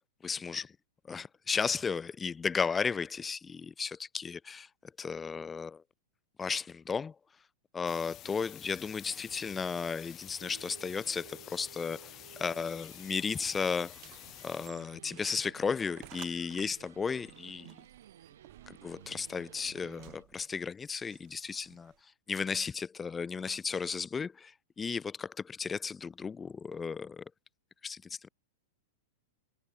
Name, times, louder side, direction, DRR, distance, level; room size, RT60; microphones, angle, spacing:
voice 1, 0.2-0.8 1.1-5.8 6.4-7.1 7.7-14.0 14.4-17.8 18.7-21.9 22.3-27.2 27.8-28.3, left 5 dB, 15° left, 0.9 m, -34 dB
sound 1, 7.9-14.7, left 14 dB, 30° left, 1.6 m, -50 dB
sound 2, 10.4-20.2, right 11 dB, 80° right, 6.4 m, -55 dB
sound 3, 13.9-22.0, right 29 dB, 45° right, 4.7 m, -56 dB
supercardioid pair, 140°, 0 cm